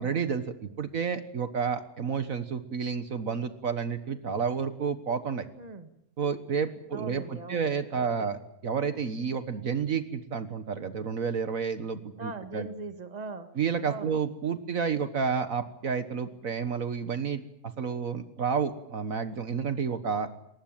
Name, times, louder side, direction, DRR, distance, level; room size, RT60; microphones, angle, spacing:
voice 1, 0.0-5.5 6.2-8.4 8.6-12.7 13.5-17.4 17.8-20.3, right 6 dB, 65° right, 10 dB, 1.7 m, -30 dB
voice 2, 5.6-5.9 6.9-8.3 12.2-13.5 13.8-14.2, right 3 dB, 25° right, 8 dB, 1.7 m, -40 dB
22.5 x 20.0 x 9.0 m, 0.78 s
omnidirectional pair, 1.6 m